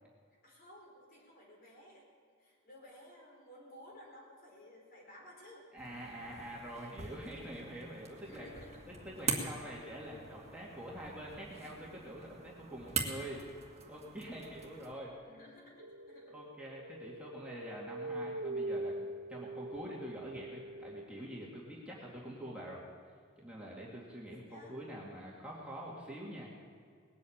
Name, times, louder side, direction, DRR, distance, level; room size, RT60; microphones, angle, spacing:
voice 1, 0.4-5.7 8.2-8.9 15.2-16.4 21.9-22.2 24.3-24.7, left 1 dB, 45° left, -2 dB, 4.6 m, -56 dB
voice 2, 5.7-8.5 8.9-13.4 13.9-15.1 16.3-19.0 19.3-22.8 23.4-26.5, right 1 dB, 5° right, -5 dB, 2.3 m, -45 dB
sound 1, 5.8-14.9, right 5 dB, 30° right, 1.9 m, -43 dB
sound 2, 15.8-21.1, right 1 dB, 65° right, 0.8 m, -42 dB
20.0 x 8.4 x 8.7 m, 2.1 s
head